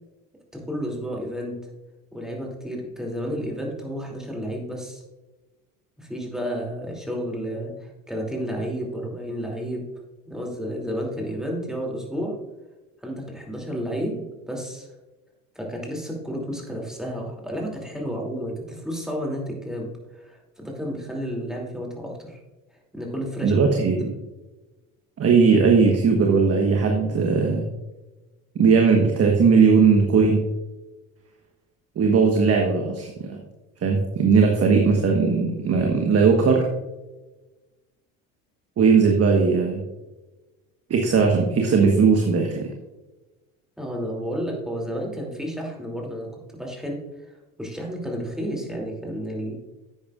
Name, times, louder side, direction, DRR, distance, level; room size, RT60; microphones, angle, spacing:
voice 1, 0.5-1.6 2.1-5.0 6.0-9.9 10.3-12.4 13.0-14.9 15.5-22.4 22.9-23.7 43.8-47.0 47.6-49.5, equal, ahead, -1 dB, 2.8 m, -31 dB
voice 2, 23.4-24.1 25.2-27.7 28.5-30.4 32.0-33.4 33.8-36.6 38.8-39.8 40.9-42.7, right 5 dB, 35° right, 2 dB, 1.3 m, -18 dB
11.5 x 8.5 x 2.5 m, 1.1 s
hypercardioid pair, 70°, 43 cm